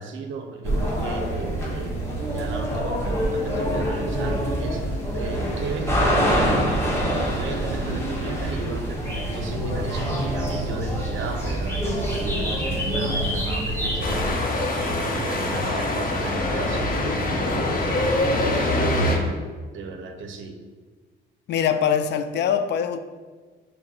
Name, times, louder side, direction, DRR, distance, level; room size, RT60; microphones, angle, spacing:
voice 1, 0.0-2.0 2.3-4.8 5.1-7.0 7.3-19.4 19.7-20.6, right 3 dB, 75° right, 5 dB, 0.6 m, -34 dB
sound 1, 0.6-14.3, equal, 10° left, 1.1 m, -25 dB
sound 2, 14.0-19.2, left 1 dB, 45° left, 0.8 m, -24 dB
voice 2, 21.5-23.0, left 8 dB, 60° left, 10 dB, 0.4 m, -23 dB
5.8 x 2.1 x 3.7 m, 1.4 s
cardioid pair, 90°, 20 cm